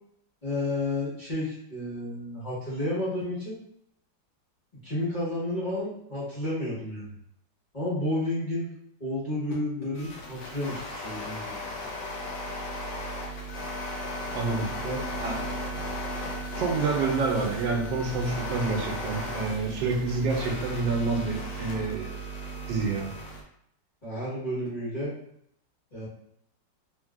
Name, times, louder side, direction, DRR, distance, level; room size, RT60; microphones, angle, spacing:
voice 1, 0.4-3.6 4.8-7.1 7.7-8.7 9.0-11.6 14.3-14.4 14.7-15.0 24.0-25.1 25.9-26.1, left 1 dB, 30° left, -9 dB, 1.1 m, -31 dB
sound 1, 9.9-23.4, equal, 85° left, 1.4 m, -35 dB
voice 2, 14.3-14.7 15.2-15.3 16.6-22.1 22.7-23.1, right 4 dB, 90° right, 2 dB, 1.3 m, -28 dB
3.1 x 2.6 x 2.3 m, 0.71 s
omnidirectional pair, 1.9 m